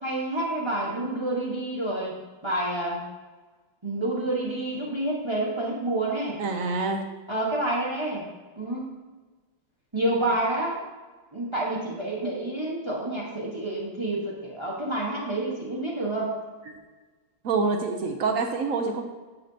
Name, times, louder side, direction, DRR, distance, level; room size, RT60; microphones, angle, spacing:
voice 1, 0.0-2.1 2.4-3.0 3.8-6.4 7.3-8.2 8.5-8.9 9.9-10.8 11.3-16.4, right 1 dB, 20° right, -4 dB, 1.0 m, -28 dB
voice 2, 6.4-7.0 17.4-19.0, right 4 dB, 60° right, 4 dB, 0.9 m, -26 dB
9.7 x 7.4 x 2.8 m, 1.3 s
omnidirectional pair, 2.2 m